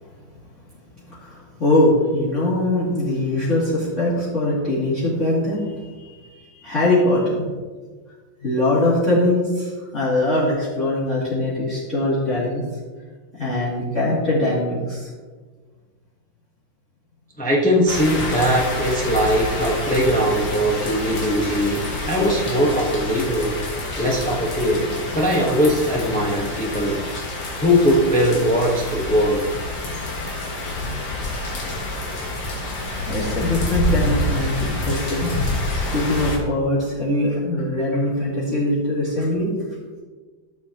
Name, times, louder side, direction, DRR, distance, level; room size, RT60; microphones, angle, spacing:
voice 1, 1.1-7.5 8.4-12.6 13.3-15.1 30.2-30.3 30.7-31.0 33.1-35.3 35.7-39.5, left 1 dB, 35° left, -11 dB, 2.8 m, -22 dB
voice 2, 17.4-23.6 24.0-27.0 27.6-29.4, equal, 10° left, -3 dB, 0.5 m, -20 dB
sound 1, 17.9-36.4, left 1 dB, 55° left, 2.2 m, -27 dB
13.5 x 7.4 x 2.9 m, 1.4 s
omnidirectional pair, 2.2 m